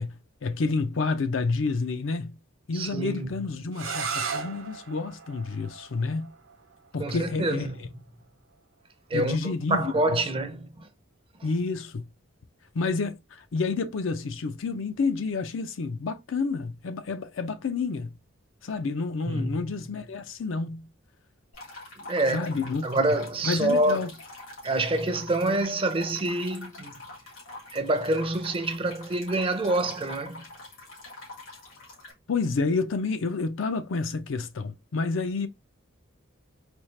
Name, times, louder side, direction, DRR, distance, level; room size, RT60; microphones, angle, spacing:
voice 1, 0.0-2.4 2.7-6.3 6.9-7.9 9.1-10.2 11.4-12.1 12.7-18.2 18.6-20.9 22.3-23.0 23.4-24.1 32.3-35.5, left 4 dB, 70° left, 0.5 m, -29 dB
voice 2, 2.7-3.3 7.0-7.8 9.1-10.9 19.3-19.6 22.0-22.5 22.8-24.1 24.6-27.1 27.7-30.5, right 2 dB, 25° right, 0.5 m, -27 dB
sound 1, 3.7-9.4, right 6 dB, 80° right, 0.8 m, -38 dB
Water Dripping - KV, 21.5-32.1, left 2 dB, 85° left, 2.1 m, -44 dB
4.3 x 2.3 x 3.1 m
head